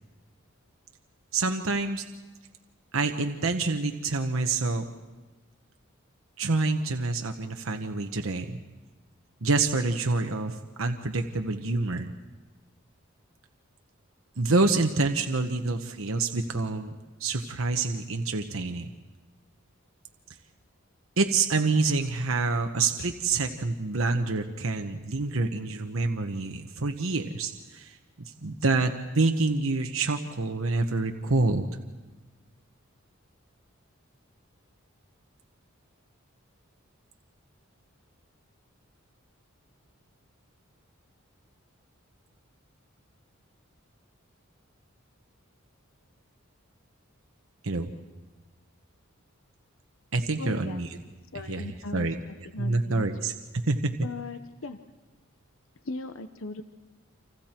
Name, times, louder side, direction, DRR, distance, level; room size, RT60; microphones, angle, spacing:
voice 1, 1.3-2.0 2.9-4.8 6.4-8.6 9.4-12.1 14.4-16.9 17.2-18.9 21.2-28.0 28.2-31.7 47.6-47.9 50.1-50.9 51.5-52.2 52.6-53.3 53.7-53.9, right 3 dB, 75° right, 5 dB, 1.1 m, -27 dB
voice 2, 50.4-50.8 51.3-52.1 52.5-53.1 54.0-54.8 55.8-56.6, left 3 dB, 70° left, 9 dB, 0.9 m, -37 dB
29.5 x 26.5 x 4.5 m, 1.2 s
head